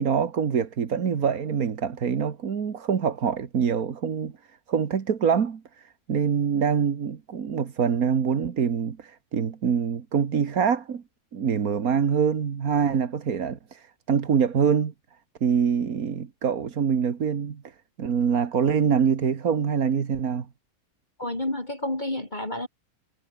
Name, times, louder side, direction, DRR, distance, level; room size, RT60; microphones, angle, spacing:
voice 1, 0.0-4.3 4.7-5.6 6.1-11.0 11.3-14.9 15.4-17.6 18.0-20.5, right 7 dB, 85° right, 2.0 m, -25 dB
voice 2, 21.2-22.7, left 1 dB, 30° left, 3.8 m, -30 dB
omnidirectional pair, 1.5 m